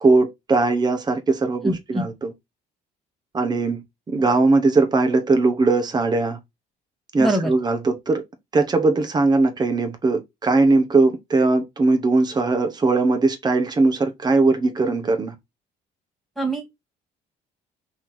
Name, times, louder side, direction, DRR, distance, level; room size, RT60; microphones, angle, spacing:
voice 1, 0.0-2.3 3.3-3.8 4.1-6.4 7.1-8.2 8.5-15.3, right 3 dB, 25° right, 1.1 m, -20 dB
voice 2, 1.6-2.0 7.2-7.5 16.4-16.6, right 1 dB, ahead, 2.0 m, -23 dB
4.4 x 2.9 x 4.0 m
cardioid pair, 110°, 17 cm